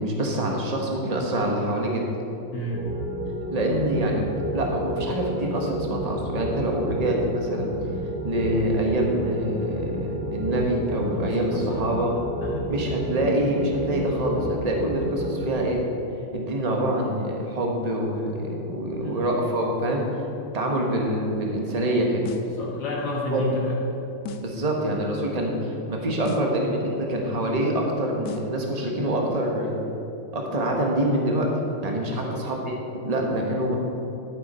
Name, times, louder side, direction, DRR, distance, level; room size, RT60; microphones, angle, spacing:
voice 1, 0.0-2.1 3.5-7.7 8.2-12.2 12.7-15.8 16.3-20.0 20.5-22.2 23.3-23.5 24.4-29.8 30.3-31.5 31.8-33.8, right 1 dB, 25° right, 0 dB, 1.0 m, -25 dB
voice 2, 2.5-2.8 11.1-11.9 12.4-12.6 19.0-19.2 22.4-23.8 32.1-32.4, left 2 dB, 50° left, -3 dB, 2.1 m, -31 dB
sound 1, 2.7-15.5, equal, 50° right, 2.6 m, -31 dB
sound 2, 22.2-22.6 24.2-24.6 26.2-26.6 28.2-28.6, left 4 dB, 80° left, 0.8 m, -37 dB
12.0 x 8.5 x 4.3 m, 2.8 s
omnidirectional pair, 2.3 m